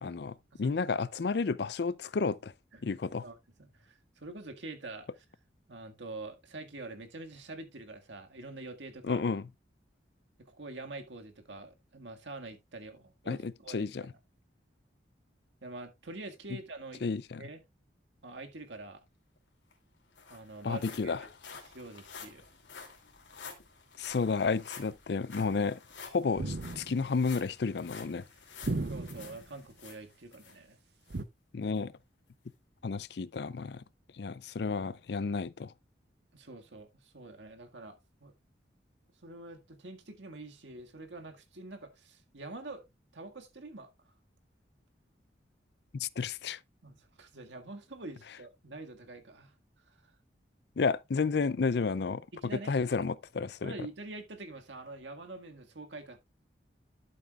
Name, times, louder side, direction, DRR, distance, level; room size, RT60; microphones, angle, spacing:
voice 1, 0.0-2.5 2.8-3.2 9.0-9.4 13.3-14.1 17.0-17.4 20.6-21.2 24.0-28.2 31.5-31.9 32.8-33.8 34.1-35.7 45.9-46.6 50.8-52.3 52.7-53.7, left 4 dB, 65° left, 0.5 m, -31 dB
voice 2, 0.5-1.0 2.7-2.9 3.2-5.2 5.7-9.2 10.4-13.9 15.6-17.0 17.4-17.6 18.2-19.0 20.3-21.3 21.6-22.4 28.9-30.8 36.3-38.3 39.2-42.8 43.1-44.1 46.8-49.6 49.8-50.1 52.3-52.7 53.6-56.2, right 2 dB, 80° right, 1.9 m, -46 dB
sound 1, 19.4-19.5 19.7-30.6 31.1-31.2 31.8-31.9, left 5 dB, 90° left, 2.8 m, -50 dB
sound 2, 26.4-27.1 28.6-29.4 31.1-31.3, right 2 dB, 60° right, 0.7 m, -35 dB
12.0 x 7.3 x 2.4 m
head